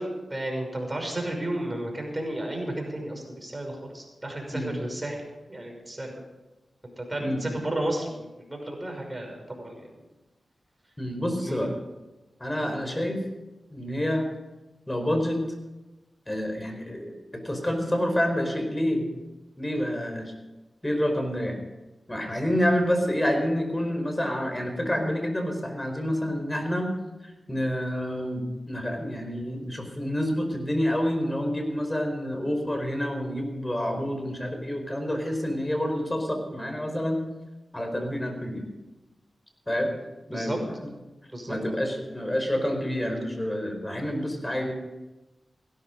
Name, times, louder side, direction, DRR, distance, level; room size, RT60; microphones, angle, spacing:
voice 1, 0.0-5.2 5.5-6.2 6.8-9.9 11.4-11.7 40.3-40.6 41.3-41.6, right 1 dB, 25° right, 2 dB, 5.9 m, -33 dB
voice 2, 11.0-11.7 12.4-13.2 13.7-14.2 14.9-15.4 16.3-19.0 19.6-20.3 20.8-21.6 22.1-26.9 27.2-37.2 37.7-38.7 39.7-39.9 40.3-40.9 41.5-44.7, equal, 20° left, 4 dB, 4.7 m, -28 dB
16.5 x 12.5 x 5.3 m, 1.1 s
cardioid pair, 45°, 0 cm